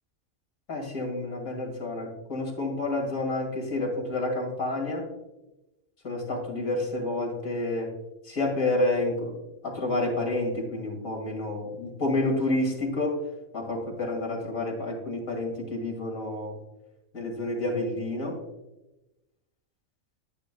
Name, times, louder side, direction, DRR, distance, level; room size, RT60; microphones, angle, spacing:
voice 1, 0.7-5.1 6.0-7.9 8.3-13.2 13.5-16.5 17.1-18.4, left 2 dB, 85° left, 0 dB, 2.5 m, -29 dB
10.5 x 9.4 x 2.2 m, 0.97 s
omnidirectional pair, 1.4 m